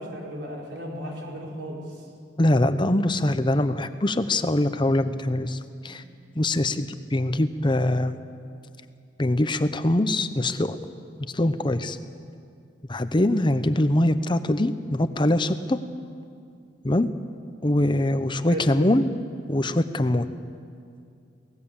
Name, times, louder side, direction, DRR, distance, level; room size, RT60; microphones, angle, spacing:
voice 1, 0.0-2.0 5.8-5.9 18.5-18.7, equal, 75° right, -2 dB, 5.1 m, -35 dB
voice 2, 2.4-6.0 6.4-8.2 9.2-10.8 11.3-12.0 12.9-15.8 16.8-17.1 17.6-19.1 19.5-20.3, left 1 dB, 25° left, 11 dB, 0.8 m, -23 dB
24.0 x 18.5 x 7.2 m, 2.4 s
head